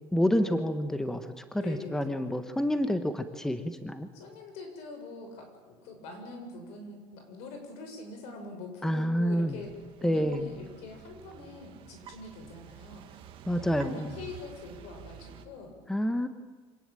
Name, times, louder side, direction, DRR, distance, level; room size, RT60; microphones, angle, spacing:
voice 1, 0.1-4.1 8.8-9.6 10.0-10.5 13.5-14.1 15.9-16.3, equal, 5° left, 9 dB, 1.2 m, -28 dB
voice 2, 1.6-2.3 4.1-13.2 13.6-15.7, left 3 dB, 75° left, 5 dB, 7.0 m, -44 dB
sound 1, 9.4-15.5, right 10 dB, 50° right, 2.1 m, -49 dB
26.0 x 18.5 x 9.0 m, 1.4 s
cardioid pair, 150°, 11 cm